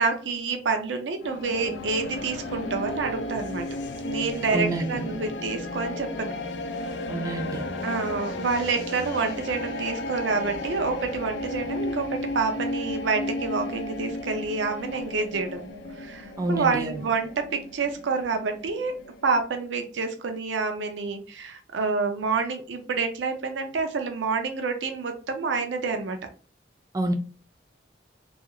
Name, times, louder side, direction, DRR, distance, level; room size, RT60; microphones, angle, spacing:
voice 1, 0.0-3.7 4.0-6.3 7.8-19.0 19.2-26.2, right 4 dB, 85° right, 0.5 m, -28 dB
sound 1, 1.2-19.4, left 2 dB, 80° left, 0.4 m, -34 dB
voice 2, 4.5-5.1 7.1-7.7 16.4-17.0 26.9-27.1, right 2 dB, 20° right, 0.3 m, -28 dB
2.4 x 2.3 x 2.8 m
head